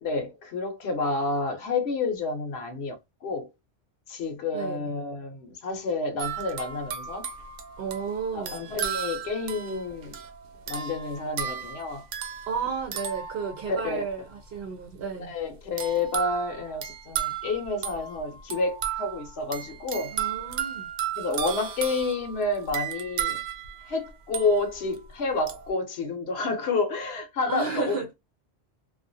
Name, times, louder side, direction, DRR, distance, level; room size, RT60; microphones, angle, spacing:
voice 1, 0.0-3.5 4.1-7.3 8.3-10.2 10.7-12.0 13.8-14.0 15.3-20.2 21.1-23.4 23.9-28.1, left 3 dB, 65° left, 0.9 m, -29 dB
voice 2, 4.5-4.9 7.8-8.6 12.5-15.3 20.1-20.9 27.5-28.1, right 6 dB, 60° right, 0.8 m, -33 dB
sound 1, 6.2-14.1 15.8-25.0 25.5-25.7, right 9 dB, 85° right, 1.0 m, -35 dB
2.4 x 2.3 x 2.5 m
omnidirectional pair, 1.2 m